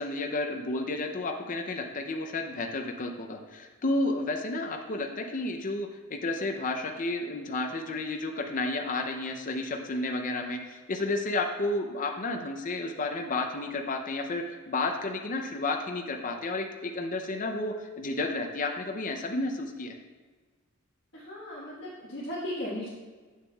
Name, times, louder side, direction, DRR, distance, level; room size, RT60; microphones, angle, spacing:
voice 1, 0.0-20.0, left 2 dB, 40° left, 3 dB, 0.5 m, -31 dB
voice 2, 21.1-22.9, left 1 dB, 60° left, -9 dB, 1.4 m, -36 dB
10.0 x 7.1 x 2.3 m, 1.4 s
head